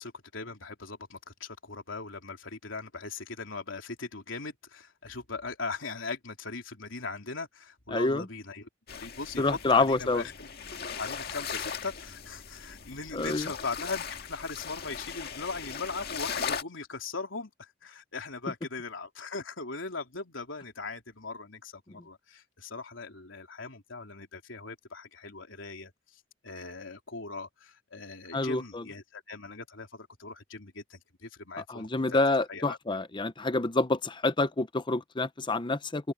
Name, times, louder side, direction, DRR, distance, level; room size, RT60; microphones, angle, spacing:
voice 1, 0.0-8.7 9.0-10.5 11.0-25.9 26.4-32.2 32.5-32.8, left 4 dB, 85° left, 3.3 m, -39 dB
voice 2, 7.9-8.2 9.4-10.2 13.1-13.5 28.3-28.8 31.7-36.1, left 2 dB, 25° left, 0.8 m, -27 dB
sound 1, 8.9-16.6, left 6 dB, 55° left, 1.8 m, -38 dB
open air
head